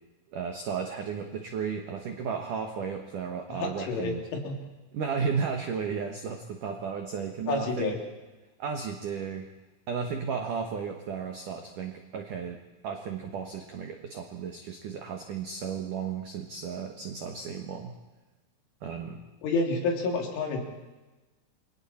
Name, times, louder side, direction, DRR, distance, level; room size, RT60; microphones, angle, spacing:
voice 1, 0.3-4.3 4.9-7.9 8.6-9.5 9.9-17.9 18.8-19.2, right 6 dB, 75° right, 4 dB, 1.9 m, -34 dB
voice 2, 3.5-4.6 7.5-8.0 19.4-20.6, left 3 dB, 70° left, 1 dB, 5.4 m, -29 dB
29.5 x 24.0 x 4.4 m, 1.1 s
omnidirectional pair, 5.9 m